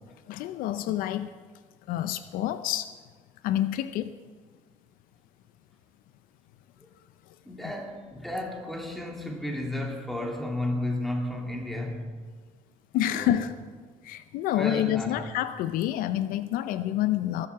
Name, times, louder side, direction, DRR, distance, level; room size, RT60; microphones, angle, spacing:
voice 1, 0.3-1.3 1.9-2.9 3.4-4.1 7.6-7.7 12.9-13.6 14.0-17.5, left 12 dB, 75° left, 13 dB, 0.6 m, -28 dB
voice 2, 7.4-12.2 13.1-13.5 14.5-15.3, left 1 dB, ahead, 1 dB, 2.9 m, -33 dB
21.0 x 7.7 x 5.9 m, 1.5 s
supercardioid pair, 90°, 15 cm